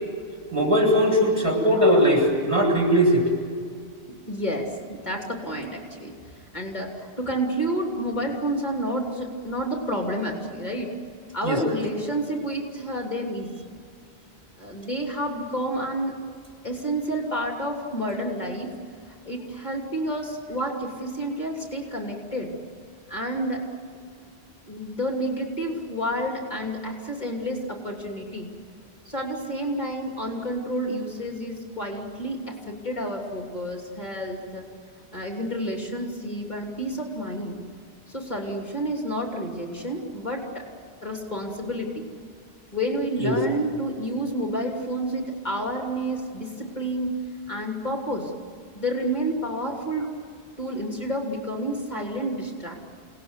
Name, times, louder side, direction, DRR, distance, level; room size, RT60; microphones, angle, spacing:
voice 1, 0.5-3.2 11.4-11.6 43.2-43.3, equal, 30° right, -3 dB, 7.8 m, -19 dB
voice 2, 4.1-6.1 6.5-11.0 11.3-13.6 14.6-16.2 16.6-18.7 19.1-22.5 23.1-23.6 24.7-28.5 29.0-34.7 35.1-37.6 38.1-40.7 41.0-42.0 42.7-47.2 47.5-48.3 48.7-50.1 50.6-52.8, right 1 dB, 45° left, 0 dB, 3.2 m, -30 dB
29.5 x 19.5 x 8.2 m, 2.2 s
omnidirectional pair, 1.1 m